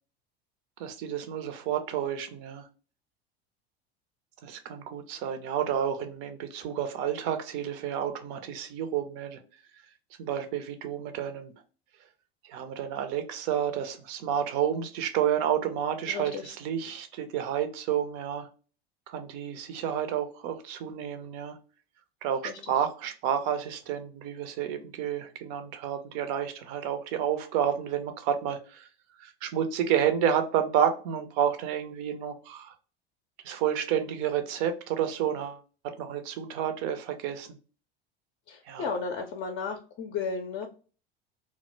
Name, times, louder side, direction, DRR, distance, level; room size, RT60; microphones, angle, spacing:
voice 1, 0.8-2.6 4.4-9.4 10.2-11.5 12.4-18.5 19.1-21.6 22.2-28.9 29.2-32.7 33.4-35.6 36.0-37.5 38.7-38.9, right 9 dB, 60° right, 8 dB, 0.6 m, -30 dB
voice 2, 16.1-16.5 22.4-22.5 38.5-40.7, left 5 dB, 40° left, 3 dB, 0.5 m, -34 dB
2.1 x 2.0 x 3.1 m, 0.38 s
hypercardioid pair, 85°, 31 cm